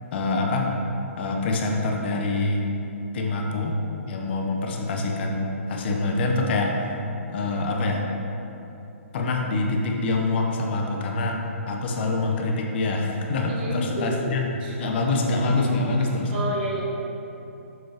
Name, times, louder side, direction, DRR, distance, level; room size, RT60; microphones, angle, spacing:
voice 1, 0.1-0.7 1.2-2.6 3.1-3.8 4.1-6.7 7.3-8.0 9.1-11.4 11.7-14.4 14.8-16.4, left 2 dB, 50° left, 1 dB, 0.8 m, -25 dB
voice 2, 13.5-14.3 14.6-14.8 16.3-17.0, right 1 dB, 40° right, -3 dB, 1.3 m, -30 dB
6.9 x 6.1 x 2.9 m, 2.9 s
hypercardioid pair, 140°, 8 cm